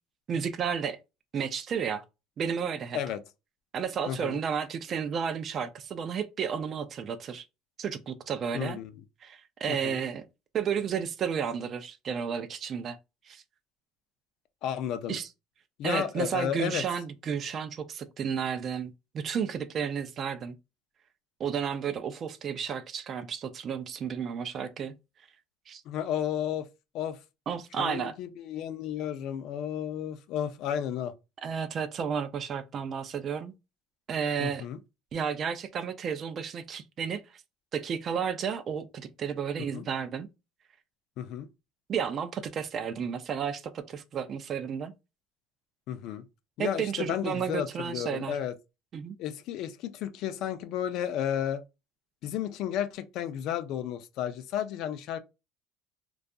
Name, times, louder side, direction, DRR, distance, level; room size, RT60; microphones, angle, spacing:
voice 1, 0.3-1.0 1.3-2.0 2.4-3.0 3.7-7.4 7.8-8.8 9.2-10.2 10.5-13.0 13.3-13.4 15.1-15.3 15.8-20.6 21.4-24.9 25.7-25.8 27.5-28.1 31.4-33.5 34.1-34.7 35.1-37.2 37.7-40.3 41.9-44.9 46.6-48.4 48.9-49.2, right 7 dB, 40° right, 0.3 m, -32 dB
voice 2, 4.1-4.4 8.5-8.9 9.7-10.0 14.6-15.2 15.8-16.8 25.9-26.7 26.9-27.2 27.8-31.1 34.4-34.8 39.7-39.9 41.2-41.5 45.9-46.2 46.6-48.5 49.2-51.6 52.2-55.2, left 10 dB, 60° left, 0.4 m, -32 dB
2.6 x 2.3 x 2.2 m
cardioid pair, 125°, 0 cm